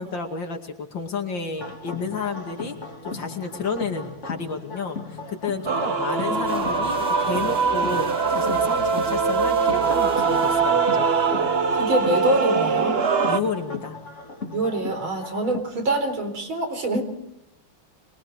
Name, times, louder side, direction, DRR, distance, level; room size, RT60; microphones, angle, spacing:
voice 1, 0.0-2.7 3.0-11.1 13.3-14.0, left 4 dB, 65° left, 3 dB, 3.0 m, -31 dB
sound 1, 1.6-15.6, left 3 dB, 35° left, 2.6 m, -37 dB
Male singing / Female singing / Musical instrument, 5.7-13.4, right 5 dB, 40° right, 1.1 m, -22 dB
sound 2, 6.4-12.1, right 3 dB, ahead, 6.9 m, -43 dB
voice 2, 11.7-13.0 14.5-17.0, right 2 dB, 75° right, 5 dB, 5.1 m, -25 dB
24.0 x 23.5 x 4.9 m, 0.89 s
omnidirectional pair, 2.2 m